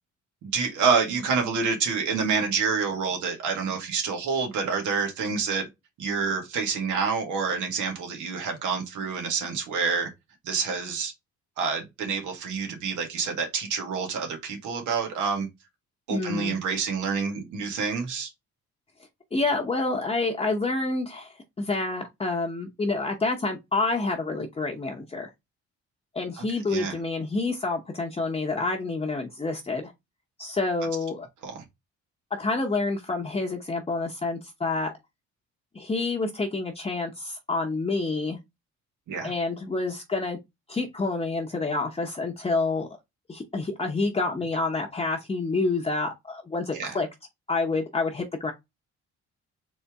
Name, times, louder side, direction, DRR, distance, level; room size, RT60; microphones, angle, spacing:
voice 1, 0.4-5.7 6.0-10.1 10.4-11.1 11.6-15.5 16.1-18.3 26.4-26.5 26.7-26.9 31.4-31.6 39.1-39.3 46.7-46.9, right 5 dB, 85° right, 1.8 m, -27 dB
voice 2, 16.1-16.6 19.3-25.3 26.1-29.9 30.4-31.3 32.3-34.9 35.7-38.4 39.2-40.4 40.7-42.9 43.3-47.1 47.5-48.5, left 3 dB, 20° left, 0.9 m, -28 dB
4.1 x 3.2 x 3.5 m
cardioid pair, 105°, 29 cm